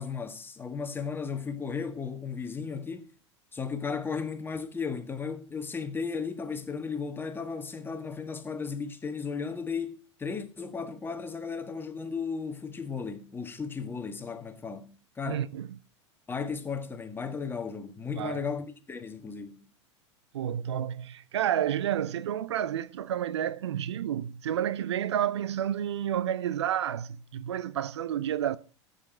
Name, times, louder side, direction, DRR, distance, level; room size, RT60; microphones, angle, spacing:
voice 1, 0.0-3.1 3.5-15.5 16.3-19.6, left 5 dB, 15° left, 1.7 m, -35 dB
voice 2, 15.3-15.7 18.2-18.4 20.3-28.6, right 10 dB, 65° right, 0.6 m, -30 dB
15.0 x 8.5 x 4.4 m
figure-of-eight pair, 85°, 16 cm